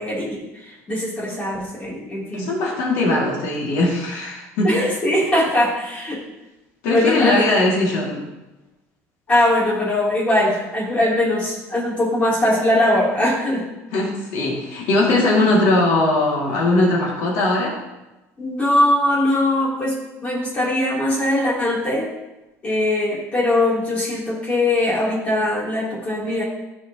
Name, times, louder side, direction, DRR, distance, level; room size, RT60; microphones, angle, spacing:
voice 1, 0.0-2.5 4.6-6.2 6.9-7.5 9.3-13.6 18.4-19.9 20.2-22.1 22.6-26.4, left 1 dB, 20° left, -8 dB, 3.0 m, -21 dB
voice 2, 2.3-4.7 6.8-8.2 13.9-17.8, left 2 dB, 65° left, -4 dB, 2.2 m, -20 dB
15.0 x 5.0 x 2.9 m, 1.0 s
cardioid pair, 175°, 6 cm